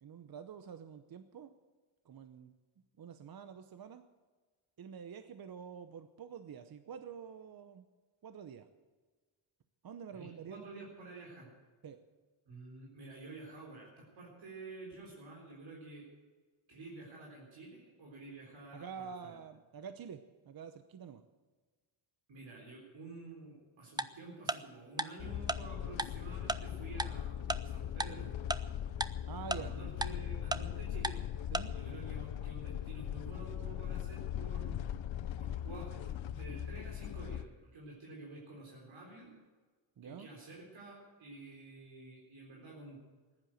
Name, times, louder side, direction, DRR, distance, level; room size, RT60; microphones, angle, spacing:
voice 1, 0.0-1.5 2.0-2.5 3.0-4.0 4.8-7.9 8.2-8.7 9.8-10.6 11.8-12.0 18.7-21.2 29.2-29.8 31.5-31.7 40.0-40.3, right 7 dB, 45° right, 10 dB, 0.9 m, -47 dB
voice 2, 10.1-11.5 12.5-16.1 16.7-19.4 22.3-28.3 29.5-31.2 31.7-34.7 35.4-39.3 40.0-43.0, right 2 dB, 70° right, -2 dB, 4.1 m, -50 dB
Tick-tock, 24.0-24.1 24.5-24.6 25.0-25.1 25.5-25.6 26.0-26.1 26.5-26.6 27.0-27.1 27.5-27.6 28.0-28.1 28.5-28.6 29.0-29.1 29.5-29.6 30.0-30.1 30.5-30.6 31.0-31.1 31.5-31.6, right 2 dB, 10° right, 0.4 m, -32 dB
sound 1, 25.2-37.5, left 10 dB, 65° left, 0.8 m, -40 dB
15.0 x 11.0 x 7.8 m, 1.4 s
cardioid pair, 115°, 48 cm